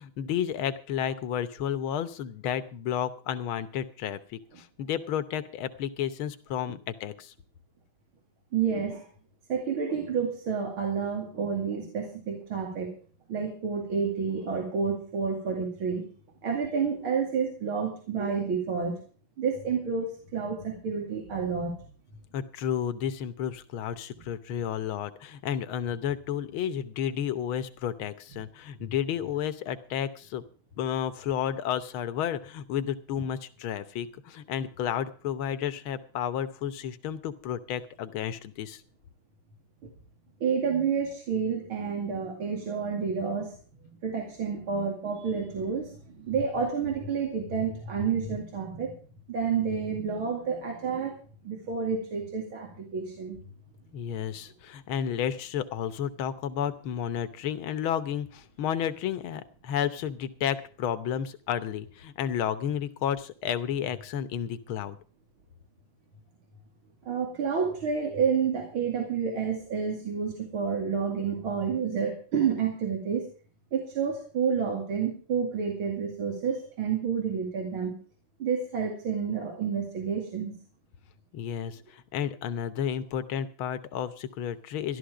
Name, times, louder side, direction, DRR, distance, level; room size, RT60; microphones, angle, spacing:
voice 1, 0.0-7.3 22.3-30.4 30.8-38.8 53.9-65.0 81.3-85.0, left 9 dB, 80° left, 12 dB, 1.8 m, -32 dB
voice 2, 8.5-9.1 9.5-13.0 13.3-16.1 16.4-19.0 19.4-21.9 39.8-39.9 40.4-43.5 44.0-49.0 49.3-51.2 51.4-53.4 67.0-73.3 73.7-78.0 78.4-80.5, right 6 dB, 80° right, 1 dB, 3.2 m, -29 dB
13.0 x 12.5 x 4.9 m, 0.40 s
omnidirectional pair, 2.3 m